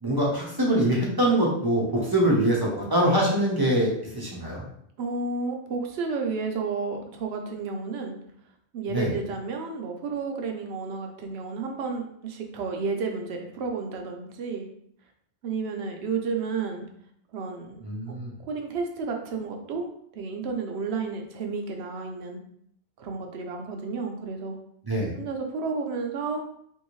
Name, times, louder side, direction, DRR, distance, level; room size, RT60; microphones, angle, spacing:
voice 1, 0.0-4.6 8.9-9.1 17.8-18.3 24.8-25.1, right 1 dB, 25° right, -3 dB, 0.6 m, -24 dB
voice 2, 5.0-8.2 8.7-14.7 15.4-16.9 17.3-18.2 18.4-19.9 20.1-22.4 23.0-24.6 25.2-26.4, right 4 dB, 70° right, 3 dB, 0.9 m, -31 dB
3.0 x 2.7 x 3.0 m, 0.69 s
omnidirectional pair, 1.2 m